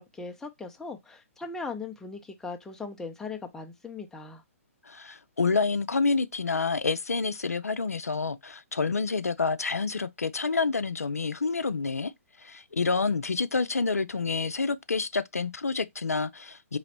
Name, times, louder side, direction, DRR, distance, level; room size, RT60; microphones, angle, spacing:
voice 1, 0.0-4.4, left 4 dB, 5° left, 0.6 m, -39 dB
voice 2, 4.8-12.1 12.4-16.8, left 4 dB, 85° left, 0.4 m, -28 dB
4.0 x 3.0 x 2.9 m
figure-of-eight pair, 125°, 8 cm